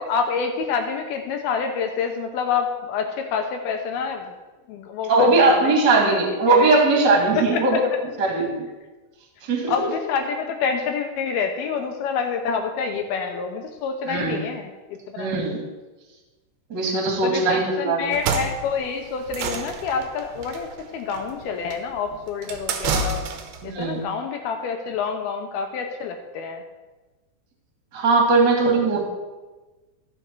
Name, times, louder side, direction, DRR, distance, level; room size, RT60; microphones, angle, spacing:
voice 1, 0.0-4.3 4.7-6.2 6.5-6.7 7.5-7.8 9.7-15.4 17.2-23.2 23.6-26.6, left 6 dB, 75° left, 5 dB, 2.4 m, -27 dB
voice 2, 5.1-7.9 8.2-8.7 9.4-9.7 14.1-14.4 15.2-15.6 16.7-18.2 23.6-24.0 27.9-29.1, right 3 dB, 35° right, 0 dB, 2.2 m, -19 dB
sound 1, 18.0-23.7, right 5 dB, 85° right, 3.1 m, -29 dB
15.0 x 7.0 x 4.6 m, 1.2 s
omnidirectional pair, 5.1 m